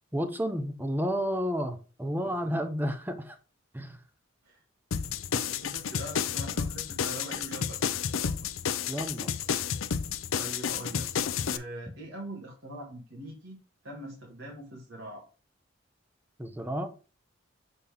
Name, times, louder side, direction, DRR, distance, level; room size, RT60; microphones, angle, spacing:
voice 1, 0.1-3.4 3.7-4.0 8.9-9.4 16.4-16.9, equal, 10° right, 7 dB, 0.8 m, -31 dB
voice 2, 2.2-2.7 4.4-4.6 4.9-5.1 5.4-8.3 10.3-11.1 11.5-15.2, right 1 dB, 70° right, -2 dB, 1.8 m, -43 dB
sound 1, 4.9-11.6, left 7 dB, 85° left, 0.5 m, -31 dB
7.1 x 4.1 x 3.5 m, 0.34 s
head